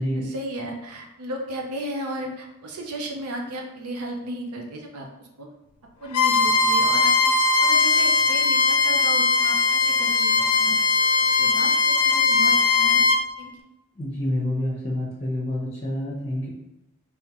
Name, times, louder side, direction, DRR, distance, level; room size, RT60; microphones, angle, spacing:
voice 1, 0.1-5.5 6.0-10.8 11.3-13.1 13.4-13.5, right 1 dB, 85° right, 1 dB, 0.7 m, -34 dB
Bowed string instrument, 6.1-13.2, left 4 dB, 85° left, 0.5 m, -19 dB
voice 2, 14.0-16.5, left 1 dB, 30° left, -5 dB, 0.8 m, -27 dB
3.6 x 3.3 x 3.0 m, 0.94 s
head